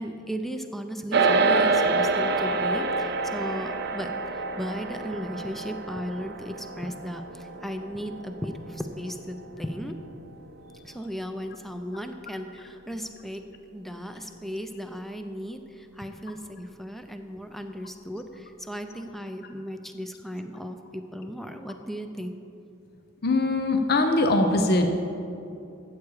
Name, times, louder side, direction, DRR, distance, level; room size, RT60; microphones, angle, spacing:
voice 1, 0.0-10.0 10.8-13.4 13.7-22.4, equal, ahead, 6 dB, 0.5 m, -36 dB
sound 1, 1.1-10.6, right 3 dB, 50° right, 0.5 m, -27 dB
voice 2, 23.2-24.9, left 2 dB, 50° left, 6 dB, 0.7 m, -22 dB
13.5 x 8.4 x 4.8 m, 2.8 s
head